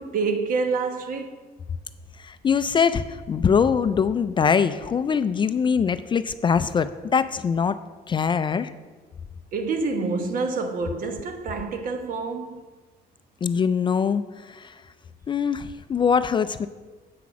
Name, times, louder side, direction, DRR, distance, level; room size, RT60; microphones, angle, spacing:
voice 1, 0.0-1.4 9.5-12.6, right 4 dB, 55° right, 1.0 m, -27 dB
voice 2, 2.2-7.8 8.1-8.7 13.4-14.8 15.3-16.7, left 6 dB, 30° left, 0.3 m, -23 dB
8.5 x 6.0 x 5.9 m
cardioid pair, 110°, 17 cm